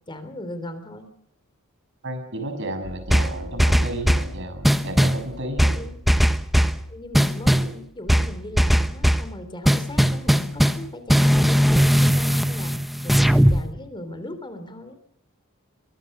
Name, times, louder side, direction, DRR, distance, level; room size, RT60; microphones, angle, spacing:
voice 1, 0.1-1.1 5.8-6.0 6.7-12.7 13.0-15.0, left 1 dB, 20° left, 10 dB, 3.4 m, -38 dB
voice 2, 2.0-5.8, right 1 dB, 60° right, 7 dB, 6.8 m, -32 dB
sound 1, 2.8-8.0, equal, 30° right, 6.0 m, -45 dB
sound 2, 3.1-4.3 4.6-5.2 5.6-6.8 7.1-7.7 8.1-9.3 9.7-10.8 11.1-13.6, equal, ahead, 1.1 m, -18 dB
23.5 x 20.0 x 6.7 m, 0.75 s
head